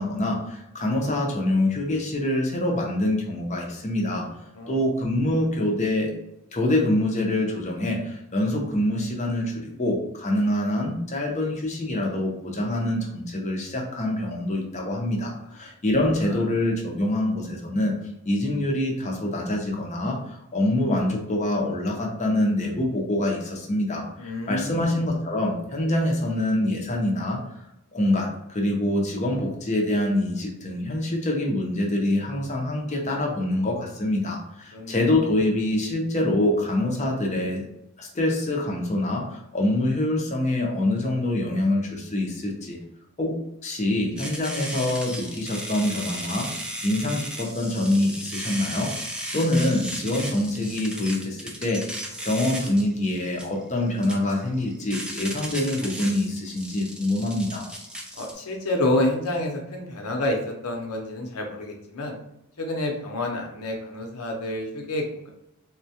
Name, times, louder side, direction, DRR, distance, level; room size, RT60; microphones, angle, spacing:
voice 1, 0.0-4.2 4.7-6.1 6.5-17.9 18.2-27.6 27.9-37.7 38.0-42.8 43.2-43.3 43.6-46.5 46.8-48.9 49.3-51.8 52.2-57.7, left 1 dB, 30° left, 0 dB, 0.7 m, -25 dB
voice 2, 4.5-4.9 16.3-16.4 24.2-25.0 34.7-34.9 58.2-62.2 62.6-65.3, left 1 dB, 85° left, 1 dB, 0.8 m, -28 dB
sound 1, 44.2-58.3, equal, 5° right, 0.4 m, -35 dB
3.6 x 2.3 x 2.8 m, 0.83 s
head